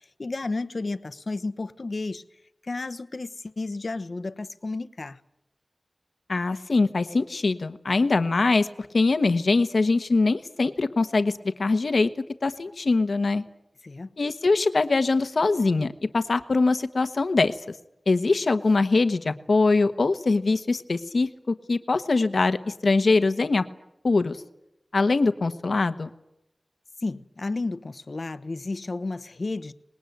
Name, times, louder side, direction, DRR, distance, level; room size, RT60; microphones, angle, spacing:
voice 1, 0.2-2.2 2.6-5.2 13.8-14.1 27.0-29.7, left 3 dB, 65° left, 1.1 m, -32 dB
voice 2, 6.3-12.1 12.4-13.4 14.2-17.6 18.1-23.6 24.0-24.4 24.9-26.1, left 3 dB, 85° left, 1.2 m, -23 dB
26.0 x 20.5 x 9.5 m
wide cardioid pair, 70°, 0 cm